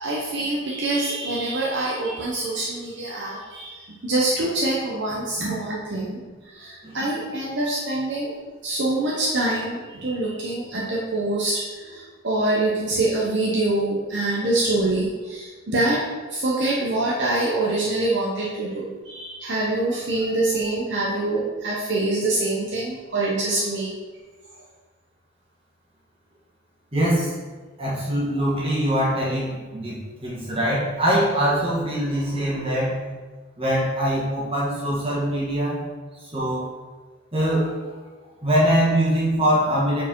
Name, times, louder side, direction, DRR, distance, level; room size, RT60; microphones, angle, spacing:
voice 1, 0.0-3.7 4.0-6.2 6.6-8.3 8.6-11.5 11.9-16.0 16.3-23.9, right 2 dB, 55° right, -5 dB, 0.8 m, -25 dB
voice 2, 26.9-27.3 27.8-33.0 33.6-35.8 36.3-36.7 37.3-37.7 38.4-40.0, equal, 25° right, -6 dB, 1.6 m, -23 dB
4.7 x 4.6 x 4.5 m, 1.4 s
head